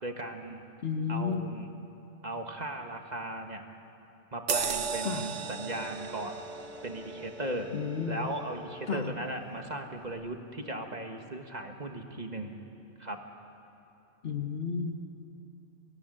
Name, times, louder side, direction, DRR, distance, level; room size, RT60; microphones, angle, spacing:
voice 1, 0.0-0.6 1.1-1.7 2.2-3.6 4.3-6.4 6.8-7.7 8.1-12.6 13.0-13.2, right 1 dB, 35° right, 4 dB, 1.6 m, -37 dB
voice 2, 0.8-1.5 5.0-5.3 7.7-8.3 8.9-9.1 14.2-14.9, left 6 dB, 55° left, 6 dB, 1.4 m, -32 dB
sound 1, 4.5-9.4 9.9-10.1, right 6 dB, 70° right, 1.3 m, -37 dB
Bowed string instrument, 5.1-9.5, left 4 dB, 5° right, 2.5 m, -50 dB
23.5 x 18.0 x 9.9 m, 2.8 s
omnidirectional pair, 1.3 m